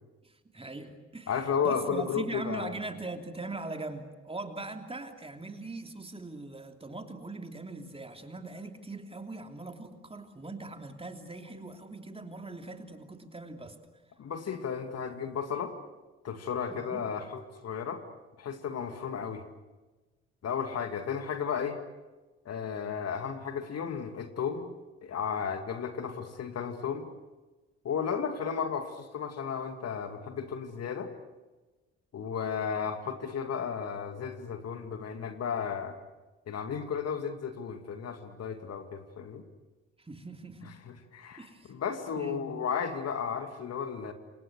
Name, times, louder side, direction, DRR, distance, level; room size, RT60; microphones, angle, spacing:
voice 1, 0.2-1.3 1.6-13.8 16.7-17.0 40.0-40.7 41.4-41.7 42.1-42.5, right 2 dB, 15° right, 5 dB, 3.2 m, -41 dB
voice 2, 1.3-2.8 14.2-15.7 16.2-18.0 18.4-19.4 20.4-21.8 22.5-24.7 25.0-27.1 27.8-31.1 32.1-36.0 36.5-39.4 40.9-44.1, left 7 dB, 50° left, 7 dB, 2.4 m, -34 dB
28.0 x 27.0 x 6.5 m, 1.2 s
figure-of-eight pair, 45°, 33 cm